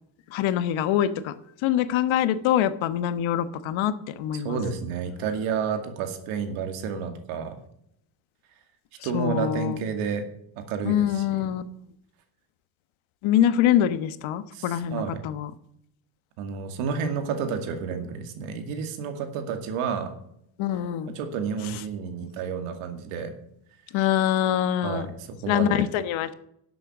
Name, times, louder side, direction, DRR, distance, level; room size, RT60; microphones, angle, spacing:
voice 1, 0.3-1.3 1.6-4.6 9.1-9.8 10.8-11.6 13.2-15.5 20.6-21.1 23.9-25.1 25.5-26.3, left 11 dB, 70° left, 13 dB, 1.2 m, -24 dB
voice 2, 4.3-7.6 9.0-10.2 10.7-11.5 14.5-15.2 16.4-20.1 21.1-23.3 24.8-25.9, right 6 dB, 90° right, 6 dB, 2.3 m, -30 dB
11.5 x 7.8 x 7.2 m, 0.74 s
cardioid pair, 125°, 49 cm